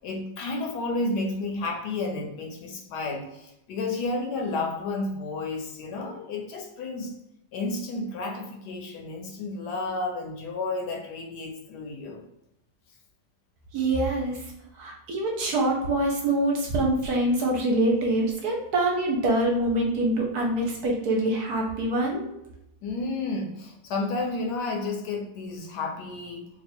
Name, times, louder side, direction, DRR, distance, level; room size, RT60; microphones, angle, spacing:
voice 1, 0.0-7.1 7.5-12.2 22.8-26.5, left 3 dB, 70° left, 2 dB, 1.1 m, -31 dB
voice 2, 13.7-14.4 14.8-22.2, right 1 dB, 65° right, -1 dB, 1.1 m, -25 dB
3.0 x 2.4 x 4.2 m, 0.85 s
omnidirectional pair, 2.0 m